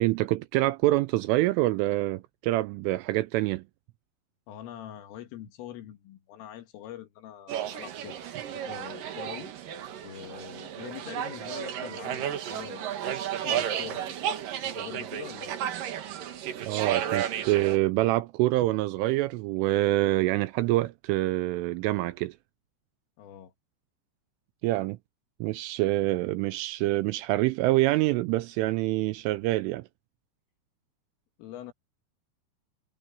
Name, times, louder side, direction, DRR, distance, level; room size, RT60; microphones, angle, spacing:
voice 1, 0.0-3.6 16.6-22.4 24.6-25.0 25.4-29.9, right 18 dB, 85° right, 3.1 m, -26 dB
voice 2, 4.5-8.2 8.5-9.5 10.0-12.9 13.4-14.2 14.6-15.6 23.2-23.5 31.4-31.7, left 11 dB, 75° left, 4.5 m, -43 dB
sound 1, 7.5-17.8, right 10 dB, 60° right, 2.4 m, -33 dB
omnidirectional pair, 5.9 m